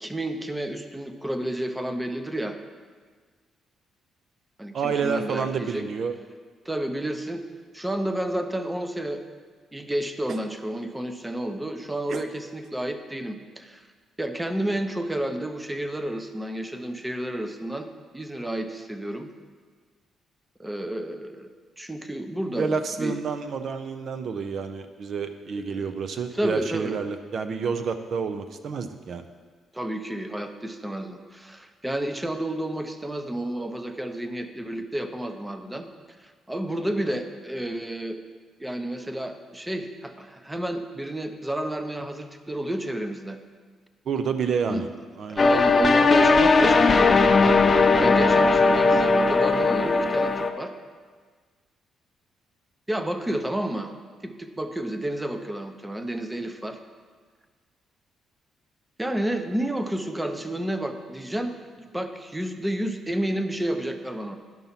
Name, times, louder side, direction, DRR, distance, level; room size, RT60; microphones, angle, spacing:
voice 1, 0.0-2.6 4.6-5.8 6.6-7.4 7.7-9.2 9.7-13.8 14.2-17.9 18.1-19.3 20.6-21.5 21.8-23.2 25.7-25.9 26.3-27.0 29.7-35.9 36.2-38.2 38.6-43.4 44.6-44.9 45.2-47.4 48.0-50.7 52.9-53.9 54.2-56.8 59.0-64.4, right 1 dB, 10° right, 8 dB, 0.7 m, -31 dB
voice 2, 4.7-6.1 10.3-10.4 12.1-12.2 22.6-29.2 44.1-44.9 45.2-45.5, right 5 dB, 60° right, 8 dB, 0.6 m, -29 dB
sound 1, 45.4-50.5, left 3 dB, 35° left, 0.6 m, -18 dB
10.5 x 5.6 x 5.8 m, 1.5 s
cardioid pair, 90°, 0 cm